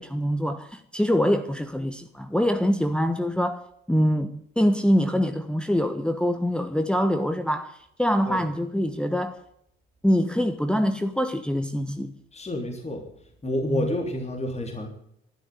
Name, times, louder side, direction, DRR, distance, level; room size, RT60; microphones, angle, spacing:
voice 1, 0.0-9.4 10.0-12.2 13.7-13.9, equal, 5° left, 1.3 m, -24 dB
voice 2, 12.3-13.0 13.4-14.9, left 1 dB, 20° left, 3.5 m, -29 dB
12.5 x 12.0 x 9.3 m
figure-of-eight pair, 50°, 30 cm